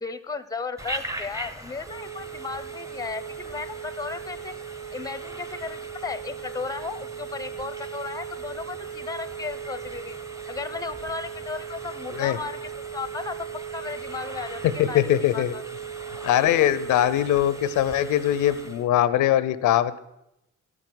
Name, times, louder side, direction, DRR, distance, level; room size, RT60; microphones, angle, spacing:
voice 1, 0.0-4.5 4.9-10.2 10.5-12.6 12.9-13.5 13.7-15.6 16.3-16.5, left 4 dB, 10° left, 13 dB, 0.6 m, -35 dB
Telephone, 0.8-18.9, right 5 dB, 10° right, 0.9 m, -37 dB
voice 2, 14.6-15.5 16.2-20.0, left 12 dB, 80° left, 15 dB, 0.6 m, -22 dB
12.5 x 6.0 x 7.8 m, 0.87 s
cardioid pair, 90°, 30 cm